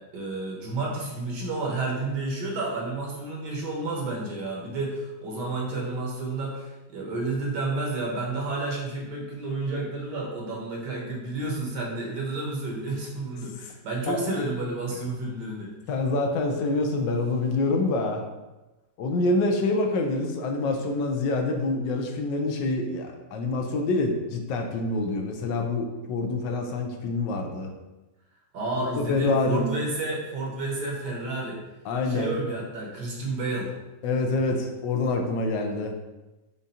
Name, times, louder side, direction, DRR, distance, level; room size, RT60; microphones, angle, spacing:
voice 1, 0.0-15.7 28.5-31.6 32.1-33.7, right 2 dB, 65° right, -2 dB, 1.5 m, -31 dB
voice 2, 15.9-18.2 19.0-27.7 28.8-29.8 31.8-32.3 34.0-35.9, left 2 dB, 75° left, 3 dB, 1.2 m, -26 dB
5.3 x 2.4 x 4.1 m, 1.1 s
omnidirectional pair, 2.0 m